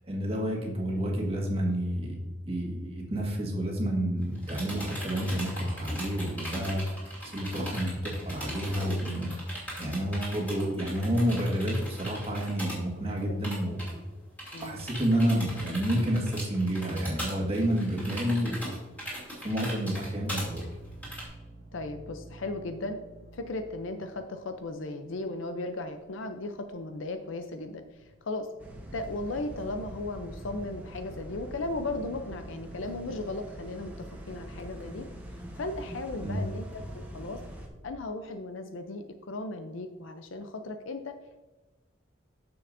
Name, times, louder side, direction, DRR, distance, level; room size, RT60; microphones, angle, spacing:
voice 1, 0.0-9.3 9.8-14.0 14.6-18.8 19.1-20.6 36.2-36.4, equal, 30° right, -2 dB, 1.7 m, -30 dB
sound 1, 4.2-12.8 13.1-13.2 13.4-13.9 14.4-21.2, equal, 10° left, 2.7 m, -39 dB
voice 2, 14.5-14.9 21.7-23.0 23.3-28.5 28.9-35.1 35.6-37.4 37.8-41.2, left 2 dB, 85° left, 7 dB, 0.6 m, -36 dB
sound 2, 19.9-24.8 25.1-25.6 25.8-26.4 26.6-27.4 27.6-37.2, right 2 dB, 65° right, 1.2 m, -51 dB
sound 3, 28.6-37.7, equal, 10° right, 1.0 m, -44 dB
9.4 x 6.8 x 2.6 m, 1.2 s
head